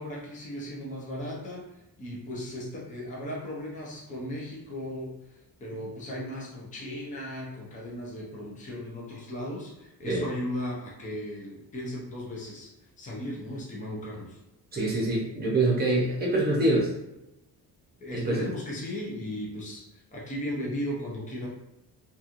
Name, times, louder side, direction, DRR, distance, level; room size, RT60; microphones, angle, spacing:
voice 1, 0.0-1.7 2.0-12.7 13.0-14.4 18.0-21.5, left 1 dB, 20° left, -4 dB, 0.6 m, -36 dB
voice 2, 14.7-16.9 18.1-18.4, right 2 dB, 25° right, -4 dB, 0.8 m, -25 dB
2.9 x 2.4 x 2.5 m, 0.93 s
cardioid pair, 170°, 40 cm